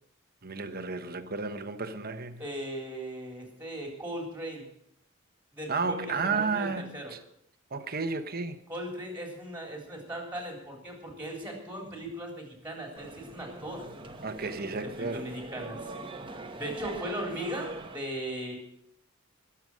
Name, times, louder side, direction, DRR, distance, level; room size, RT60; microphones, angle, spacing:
voice 1, 0.4-2.4 5.7-7.2 7.7-8.6 14.2-15.3, right 4 dB, 45° right, 1.0 m, -32 dB
voice 2, 2.4-4.7 5.5-7.1 8.7-13.8 15.0-15.9 16.5-18.6, equal, 10° right, 3.8 m, -38 dB
sound 1, 13.0-18.0, right 2 dB, 25° right, 1.1 m, -42 dB
21.0 x 7.1 x 6.3 m
head